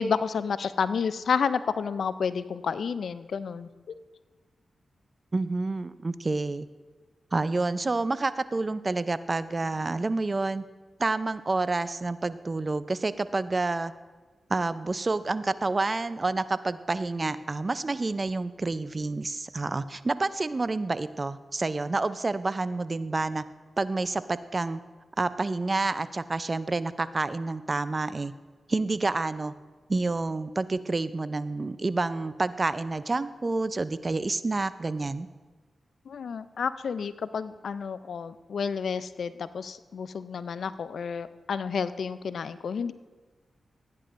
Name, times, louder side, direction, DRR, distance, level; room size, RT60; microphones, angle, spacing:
voice 1, 0.0-3.7 36.1-42.9, left 6 dB, 75° left, 14 dB, 0.4 m, -30 dB
voice 2, 5.3-6.7 7.3-10.6 11.0-13.9 14.5-23.4 23.8-24.8 25.2-28.3 28.7-29.5 29.9-35.3, right 3 dB, 40° right, 14 dB, 0.5 m, -28 dB
16.5 x 9.5 x 2.6 m, 1.3 s
cardioid pair, 50°, 0 cm